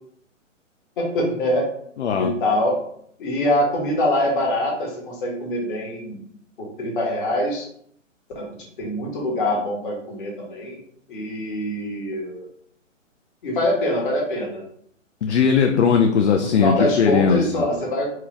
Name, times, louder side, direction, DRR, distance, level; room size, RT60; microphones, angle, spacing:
voice 1, 1.0-1.7 2.2-2.8 3.2-6.2 6.6-7.6 8.3-8.5 8.8-10.8 11.1-12.4 13.4-14.6 16.4-18.1, left 1 dB, 40° left, -1 dB, 1.4 m, -24 dB
voice 2, 2.0-2.3 15.2-17.5, left 6 dB, 60° left, 4 dB, 0.5 m, -18 dB
4.5 x 2.4 x 3.1 m, 0.65 s
figure-of-eight pair, 135°, 38 cm